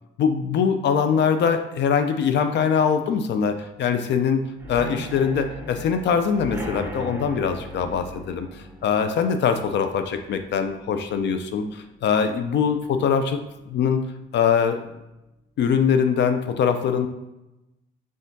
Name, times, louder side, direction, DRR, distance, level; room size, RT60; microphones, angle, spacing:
voice 1, 0.2-13.4 13.7-14.0 14.3-14.8 15.6-17.1, left 7 dB, 65° left, 8 dB, 0.4 m, -22 dB
sound 1, 4.6-12.2 12.6-13.0 13.2-13.3 13.7-13.8, equal, 10° right, 0.9 m, -39 dB
4.3 x 3.6 x 2.6 m, 0.95 s
cardioid pair, 90°, 20 cm